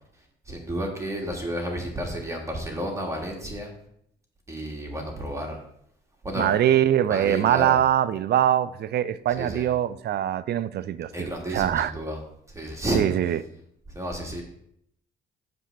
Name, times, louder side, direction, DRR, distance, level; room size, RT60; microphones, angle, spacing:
voice 1, 0.4-3.7 4.5-5.6 6.2-6.5 7.1-7.8 9.4-9.7 11.1-12.2 12.5-13.0 13.9-14.4, right 1 dB, 15° right, 1.6 m, -31 dB
voice 2, 6.4-11.1 11.5-11.9 12.9-13.4, right 11 dB, 55° right, 0.4 m, -23 dB
7.3 x 3.4 x 6.4 m
cardioid pair, 90°, 20 cm